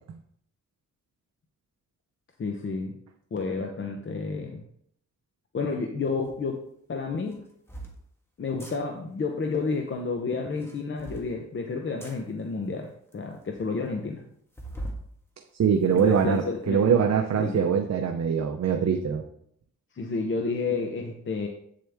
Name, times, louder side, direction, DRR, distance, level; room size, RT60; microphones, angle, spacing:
voice 1, 2.4-3.0 3.3-4.6 5.5-6.6 6.9-7.4 8.4-14.2 15.9-17.0 17.4-17.7 19.9-21.5, left 4 dB, 40° left, 3 dB, 0.8 m, -30 dB
sound 1, 6.2-6.4 7.2-8.0 8.5-8.8 10.4-11.3 12.0-12.2 12.8-12.9 13.1-13.2 13.5-13.6 14.5-15.0 15.5-16.4, right 1 dB, 10° left, 1.5 m, -40 dB
voice 2, 15.6-19.2, right 7 dB, 60° right, 4 dB, 0.8 m, -23 dB
8.4 x 7.6 x 3.5 m, 0.69 s
wide cardioid pair, 140°, 30 cm